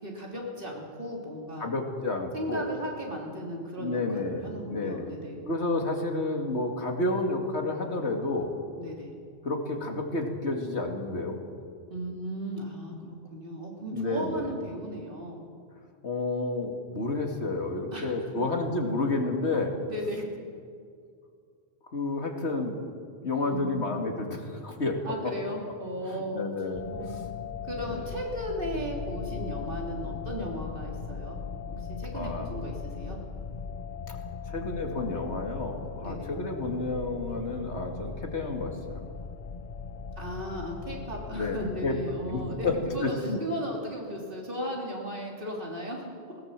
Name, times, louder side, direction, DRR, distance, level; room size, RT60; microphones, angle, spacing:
voice 1, 0.0-1.7 2.3-5.4 8.8-9.1 11.9-15.4 17.9-18.0 18.3-18.4 19.8-20.2 23.5-23.8 25.0-26.4 26.9-27.2 27.7-31.4 31.7-33.2 36.0-36.3 40.2-42.7 42.9-43.1 43.4-46.4, equal, 55° right, -1 dB, 3.5 m, -36 dB
voice 2, 1.6-2.6 3.8-5.1 5.5-8.5 9.4-11.4 13.0-13.1 13.9-14.5 16.0-19.7 21.9-22.8 23.2-25.0 26.0-26.8 27.8-28.1 32.1-32.6 34.5-39.0 41.3-41.9 42.3-42.7 43.0-43.4, left 2 dB, 90° left, 2 dB, 2.6 m, -30 dB
sound 1, 26.7-43.0, left 5 dB, 45° left, 0.8 m, -39 dB
19.0 x 18.0 x 7.5 m, 2.2 s
omnidirectional pair, 1.1 m